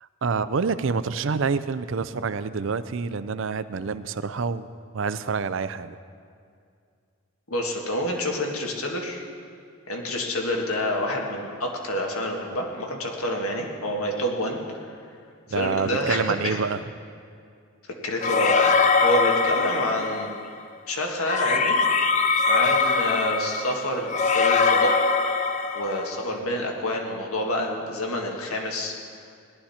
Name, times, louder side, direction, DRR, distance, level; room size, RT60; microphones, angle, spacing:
voice 1, 0.0-4.7 4.9-6.0 15.5-16.8, right 5 dB, 60° right, 14 dB, 0.5 m, -27 dB
voice 2, 7.5-9.2 9.9-14.9 15.5-16.6 18.0-20.3 20.9-21.8 22.5-25.0 25.7-28.9, left 1 dB, 80° left, 1 dB, 1.8 m, -28 dB
sound 1, 18.2-20.4 21.3-26.2, left 4 dB, 35° left, 0.5 m, -22 dB
18.0 x 12.0 x 4.3 m, 2.3 s
head